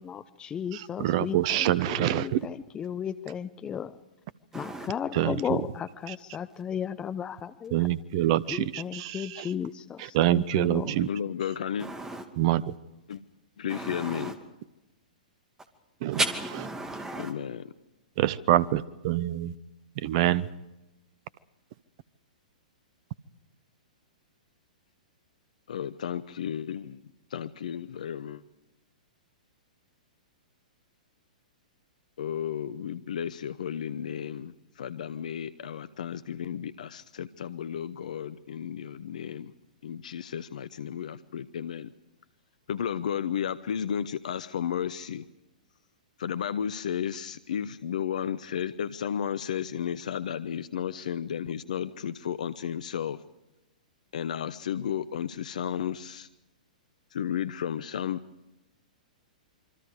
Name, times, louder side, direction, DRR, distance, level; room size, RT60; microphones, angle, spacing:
voice 1, 0.0-4.0 4.5-7.9 8.5-11.0, left 8 dB, 20° left, 13 dB, 0.9 m, -35 dB
voice 2, 0.7-2.4 5.1-5.6 6.1-6.2 7.7-9.5 10.0-11.1 12.4-12.6 16.0-16.2 18.2-19.5 20.0-20.5, right 14 dB, 45° right, 20 dB, 0.8 m, -26 dB
voice 3, 4.5-4.9 11.8-12.2 13.7-14.3 16.1-17.3, right 2 dB, 10° right, 7 dB, 2.4 m, -33 dB
voice 4, 11.0-11.9 13.1-13.2 13.6-14.3 17.2-17.6 25.7-27.0 27.3-28.4 32.2-39.5 39.8-41.9 42.7-45.2 46.2-53.2 54.1-56.3 57.1-58.2, left 8 dB, 65° left, 14 dB, 0.8 m, -33 dB
27.0 x 24.5 x 5.0 m, 0.97 s
figure-of-eight pair, 110°, 4 cm